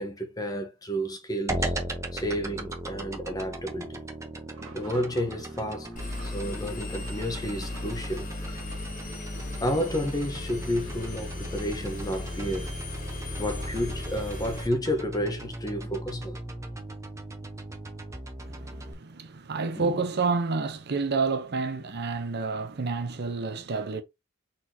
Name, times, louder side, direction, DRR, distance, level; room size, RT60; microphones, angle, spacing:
voice 1, 0.0-1.7 2.1-4.0 4.7-5.9 6.2-8.3 9.6-12.7 13.4-16.4 19.7-20.0, equal, 15° left, 0.9 m, -31 dB
sound 1, 1.5-18.9, right 1 dB, 15° right, 0.8 m, -38 dB
sound 2, 4.5-8.4, right 3 dB, 80° right, 1.5 m, -52 dB
Engine, 6.0-14.7, left 2 dB, 35° left, 1.6 m, -37 dB
voice 2, 18.4-24.0, right 4 dB, 50° right, 0.7 m, -29 dB
4.5 x 4.2 x 2.7 m
head